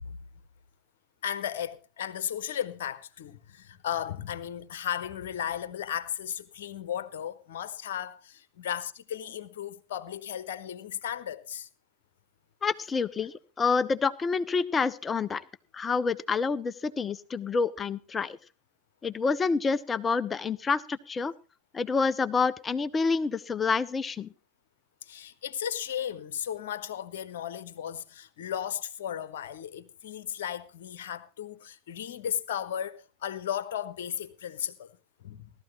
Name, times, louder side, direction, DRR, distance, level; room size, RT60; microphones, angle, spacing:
voice 1, 1.2-11.7 25.0-35.5, left 9 dB, 55° left, 1.1 m, -35 dB
voice 2, 12.6-15.4 15.7-18.4 19.0-21.3 21.7-24.3, left 4 dB, 15° left, 0.6 m, -28 dB
17.0 x 13.0 x 3.1 m
figure-of-eight pair, 90°, 0 cm